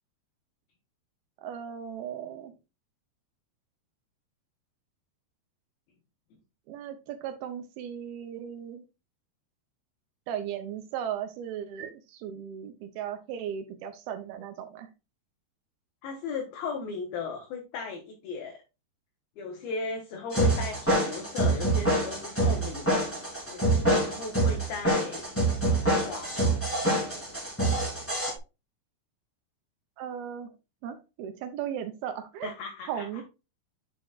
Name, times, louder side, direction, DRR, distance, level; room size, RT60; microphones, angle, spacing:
voice 1, 1.4-2.5 6.7-8.8 10.3-14.9 30.0-30.5 30.8-32.5 32.9-33.2, right 9 dB, 75° right, 8 dB, 2.5 m, -36 dB
voice 2, 16.0-18.6 19.4-23.1 23.5-25.4 26.0-26.5 32.4-33.2, left 4 dB, 70° left, 1 dB, 2.8 m, -37 dB
sound 1, 20.3-28.3, right 1 dB, 5° left, 2.2 m, -26 dB
9.7 x 6.0 x 2.4 m, 0.28 s
omnidirectional pair, 4.8 m